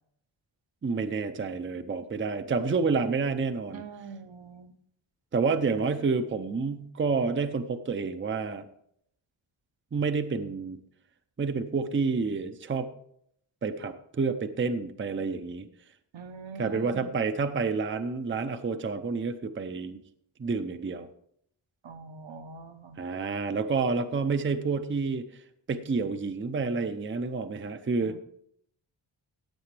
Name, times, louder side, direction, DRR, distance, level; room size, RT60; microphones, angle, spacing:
voice 1, 0.8-3.8 5.3-8.6 9.9-10.8 11.4-12.9 13.6-15.7 16.6-20.0 20.4-21.1 23.0-25.3 25.7-28.2, right 4 dB, 25° right, 9 dB, 0.5 m, -29 dB
voice 2, 3.7-4.7 16.1-17.1 21.8-23.0 28.0-28.2, right 5 dB, 70° right, 7 dB, 1.0 m, -43 dB
15.5 x 8.4 x 3.3 m, 0.70 s
wide cardioid pair, 135°, 48 cm